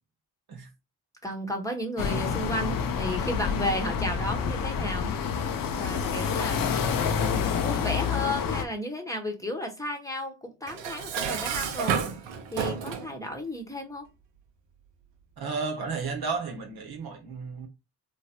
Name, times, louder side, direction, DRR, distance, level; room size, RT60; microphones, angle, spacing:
voice 1, 1.2-6.8 7.3-12.0 12.5-14.1, equal, 5° left, 1.0 m, -33 dB
sound 1, 2.0-8.7, left 6 dB, 50° left, 0.7 m, -28 dB
Dishes pots and pans, 10.7-13.1, right 6 dB, 75° right, 0.7 m, -30 dB
voice 2, 15.4-17.7, right 4 dB, 55° right, 1.0 m, -33 dB
3.2 x 2.2 x 2.7 m
hypercardioid pair, 50°, 45 cm